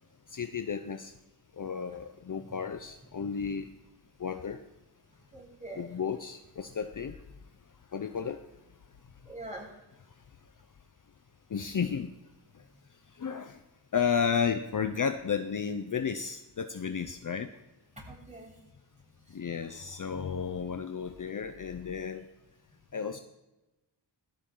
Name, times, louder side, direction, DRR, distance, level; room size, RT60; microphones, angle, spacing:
voice 1, 0.3-1.1 1.6-3.7 4.2-4.6 5.7-7.2 7.9-8.4 11.5-12.1 13.2-13.6 13.9-17.5 19.3-22.2 22.9-23.2, left 6 dB, 45° left, 8 dB, 0.7 m, -32 dB
voice 2, 5.3-5.9 9.2-9.7 18.0-18.6 19.3-19.4, right 2 dB, 15° right, -4 dB, 7.4 m, -44 dB
19.5 x 15.0 x 3.9 m, 1.0 s
wide cardioid pair, 140°, 44 cm